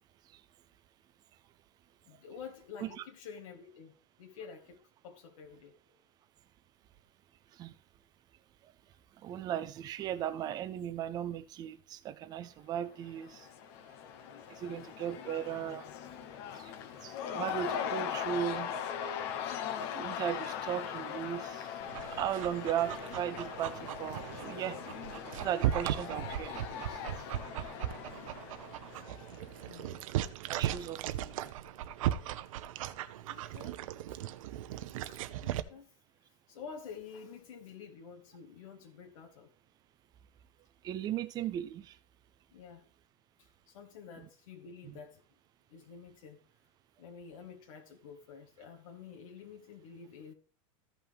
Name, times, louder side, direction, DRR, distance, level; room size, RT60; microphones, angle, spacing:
voice 1, 2.0-5.9 29.7-30.0 33.3-33.9 34.7-35.9 36.5-39.5 42.5-42.8 43.4-45.2 45.7-46.5 47.0-50.3, left 6 dB, 85° left, 1.8 m, -49 dB
voice 2, 9.2-13.5 14.5-15.8 16.5-16.7 17.0-18.7 19.9-21.7 22.1-24.8 25.4-27.0 30.5-31.5 40.8-42.0 44.2-44.3 44.8-45.0, right 10 dB, 25° right, 0.5 m, -37 dB
Cheering / Crowd, 12.9-29.8, left 8 dB, 50° left, 0.9 m, -40 dB
Dog, 21.8-35.6, right 12 dB, 85° right, 0.7 m, -37 dB
14.5 x 5.6 x 3.5 m
supercardioid pair, 165°, 17 cm